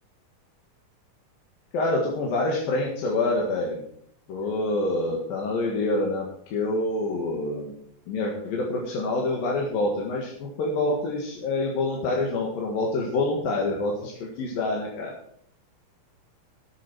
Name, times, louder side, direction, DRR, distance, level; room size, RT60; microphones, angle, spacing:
voice 1, 1.7-3.8 4.3-7.7 8.1-15.2, left 2 dB, 80° left, -2 dB, 3.6 m, -26 dB
16.0 x 8.7 x 4.6 m, 0.65 s
omnidirectional pair, 4.0 m